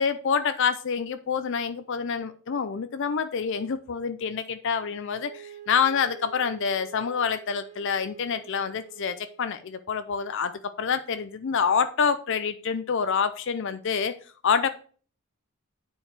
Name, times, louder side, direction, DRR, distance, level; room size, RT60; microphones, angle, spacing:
voice 1, 0.0-10.5 10.8-14.1 14.4-14.7, left 6 dB, 55° left, 0.5 m, -27 dB
Wind instrument woodwind instrument, 5.0-9.5, right 12 dB, 30° right, 1.3 m, -47 dB
8.8 x 4.6 x 4.8 m
head